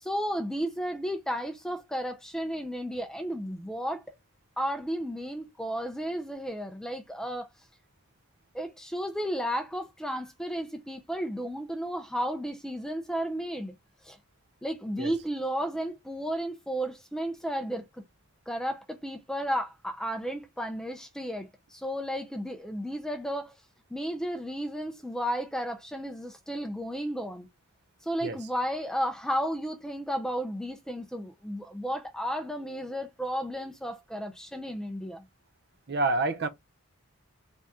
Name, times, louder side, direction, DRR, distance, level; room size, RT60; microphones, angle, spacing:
voice 1, 0.0-4.0 4.6-7.5 8.5-13.7 14.0-14.2 14.6-18.0 18.5-23.5 23.9-27.5 28.0-35.3, equal, 5° left, 0.4 m, -33 dB
voice 2, 35.9-36.5, right 3 dB, 45° right, 0.6 m, -27 dB
3.5 x 2.8 x 3.6 m
head